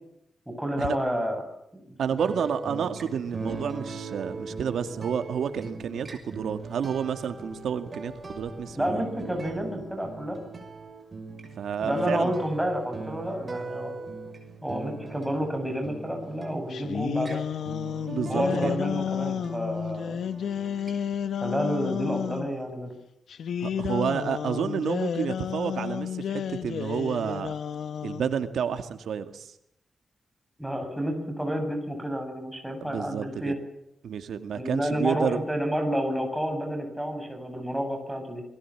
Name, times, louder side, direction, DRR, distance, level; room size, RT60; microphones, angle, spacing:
voice 1, 0.5-1.4 1.9-2.0 8.7-10.4 11.8-13.9 14.6-17.4 18.3-20.2 21.4-22.9 30.6-33.6 34.5-38.4, equal, ahead, 4 dB, 8.0 m, -30 dB
voice 2, 2.0-9.0 11.6-12.3 18.1-18.7 23.6-27.5 28.0-29.5 32.8-33.5 34.0-35.4, right 7 dB, 90° right, 8 dB, 2.1 m, -30 dB
sound 1, 2.2-21.2, right 3 dB, 30° right, 6.1 m, -40 dB
sound 2, 16.7-22.5 23.3-28.4, left 8 dB, 85° left, 1.6 m, -31 dB
28.5 x 21.5 x 7.4 m, 0.80 s
wide cardioid pair, 150°, 0 cm